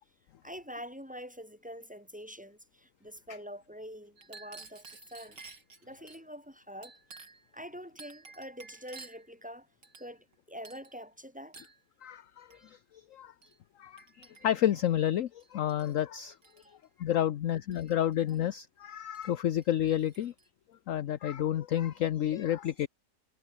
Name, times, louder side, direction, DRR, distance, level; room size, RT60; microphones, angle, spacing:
voice 1, 0.4-4.8 5.1-5.4 5.8-7.0 7.5-9.7 10.0-11.6 16.6-16.8, equal, 5° right, 7.9 m, -45 dB
Chink clink, 4.2-6.2 6.8-7.5 8.0-9.3 9.8-10.3 10.6-10.9 11.5-11.8 12.5-12.7 13.4-13.6 14.0-14.7 15.4-16.0 16.3-16.7 17.7-18.4 19.1-19.3 19.6-20.5, right 4 dB, 85° right, 4.2 m, -52 dB
voice 2, 12.0-12.8 13.1-13.3 13.8-16.4 17.0-20.3 20.9-22.9, left 11 dB, 60° left, 1.0 m, -30 dB
omnidirectional pair, 1.8 m